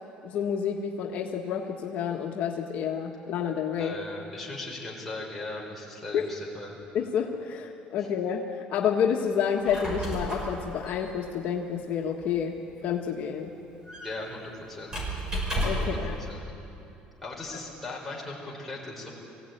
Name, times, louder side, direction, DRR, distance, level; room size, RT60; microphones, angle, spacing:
voice 1, 0.2-4.0 6.1-6.2 6.9-13.5 15.6-16.2, left 7 dB, 60° left, 1 dB, 1.5 m, -29 dB
voice 2, 3.7-6.8 8.0-8.1 14.0-15.0 15.7-16.0 16.3-16.5 17.2-19.1, left 2 dB, 5° left, -4 dB, 5.0 m, -38 dB
Squeak, 9.4-16.1, right 1 dB, 25° right, 6.3 m, -34 dB
22.5 x 16.0 x 9.3 m, 2.8 s
cardioid pair, 145°, 3 cm